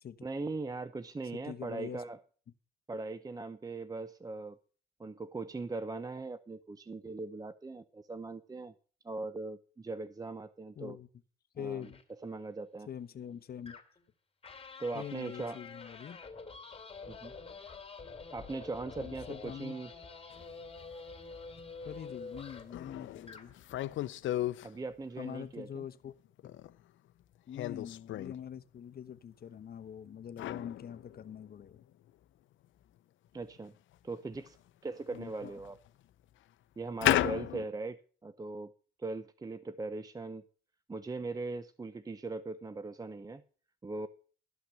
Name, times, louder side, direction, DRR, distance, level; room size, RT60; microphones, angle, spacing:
voice 1, 0.2-2.2 2.9-4.6 5.0-8.7 9.0-11.0 11.6-11.9 12.2-12.9 14.8-15.6 17.1-17.4 18.3-19.9 24.6-25.8 33.3-33.7 34.0-34.6 34.8-35.8 36.8-38.7 39.0-40.4 40.9-43.4 43.8-44.1, right 3 dB, 20° right, 0.6 m, -40 dB
voice 2, 1.3-2.0 10.8-11.1 11.5-12.0 12.9-13.8 14.9-16.2 19.0-19.7 21.8-23.5 25.2-26.1 26.4-26.5 27.5-31.9 35.1-35.6, left 8 dB, 50° left, 0.9 m, -44 dB
sound 1, 11.8-12.0 13.7-14.0 14.4-22.8 23.2-23.5, left 4 dB, 30° left, 2.7 m, -48 dB
sound 2, 20.3-20.4 21.6-21.7 22.1-22.2 22.7-24.7 26.1-26.8 27.5-28.4 30.4-31.8 32.1-32.2 33.6-33.7 34.3-34.5 35.0-35.9 37.0-37.7, left 14 dB, 75° left, 0.6 m, -34 dB
13.0 x 5.9 x 7.5 m
cardioid pair, 90°, 20 cm